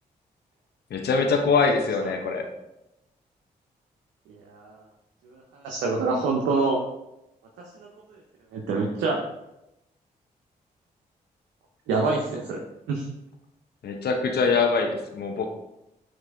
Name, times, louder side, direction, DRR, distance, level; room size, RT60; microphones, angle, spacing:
voice 1, 0.9-2.5 13.8-15.5, left 4 dB, 65° left, 4 dB, 0.7 m, -23 dB
voice 2, 4.3-4.8 5.3-6.8 7.7-8.2 8.5-9.2 11.9-13.1, right 3 dB, 90° right, 0 dB, 0.5 m, -27 dB
5.9 x 2.7 x 3.4 m, 0.89 s
supercardioid pair, 45°, 18 cm